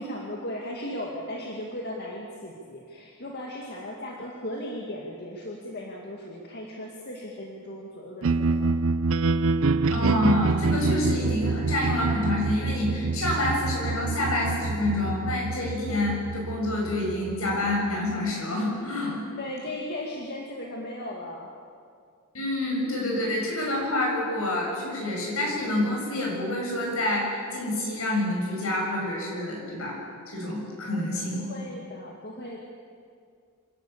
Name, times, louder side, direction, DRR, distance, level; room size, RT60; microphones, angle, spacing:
voice 1, 0.0-8.8 19.4-21.5 30.9-32.6, left 1 dB, 50° left, -1 dB, 2.1 m, -37 dB
sound 1, 8.2-18.3, right 3 dB, 70° right, 0.6 m, -27 dB
voice 2, 9.9-19.2 22.3-30.0 30.3-31.4, left 1 dB, 80° left, -2 dB, 7.1 m, -27 dB
26.0 x 12.0 x 8.6 m, 2.2 s
head